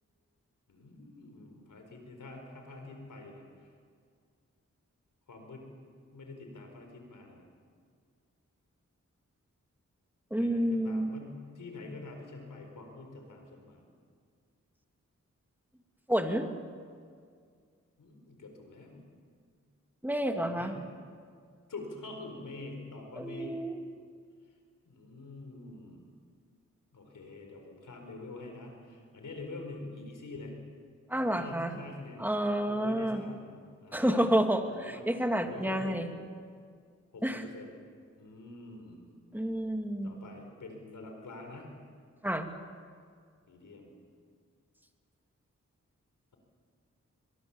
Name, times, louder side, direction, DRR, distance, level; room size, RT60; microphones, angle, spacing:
voice 1, 0.7-3.7 5.3-5.7 6.1-7.4 10.4-13.8 18.0-19.0 20.4-20.7 21.7-23.6 24.8-26.0 26.9-30.6 31.4-32.4 32.7-36.0 37.1-37.8 38.2-39.0 40.0-41.8 43.5-43.9, left 2 dB, 90° left, 3 dB, 4.5 m, -46 dB
voice 2, 10.3-11.1 16.1-16.5 20.0-20.7 23.2-23.8 31.1-31.8 32.2-33.2 33.9-36.1 37.2-37.5 39.3-40.1 42.2-42.5, right 1 dB, 5° right, 4 dB, 2.8 m, -29 dB
23.0 x 22.5 x 7.4 m, 2.1 s
cardioid pair, 45°, 31 cm